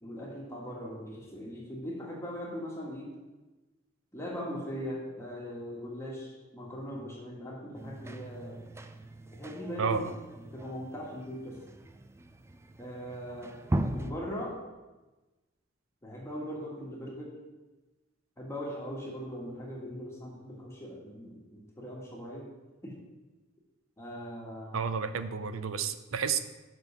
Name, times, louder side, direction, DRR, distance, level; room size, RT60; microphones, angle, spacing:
voice 1, 0.0-3.1 4.1-8.6 9.3-10.0 10.5-11.6 12.8-13.5 13.8-14.5 16.0-17.3 18.4-22.5 22.8-22.9 24.0-24.8, equal, 15° left, -4 dB, 1.6 m, -40 dB
sound 1, 7.7-14.1, right 1 dB, 15° right, 0.4 m, -38 dB
voice 2, 9.8-10.1 24.7-26.4, right 6 dB, 85° right, 12 dB, 0.5 m, -31 dB
6.1 x 5.4 x 6.9 m, 1.1 s
head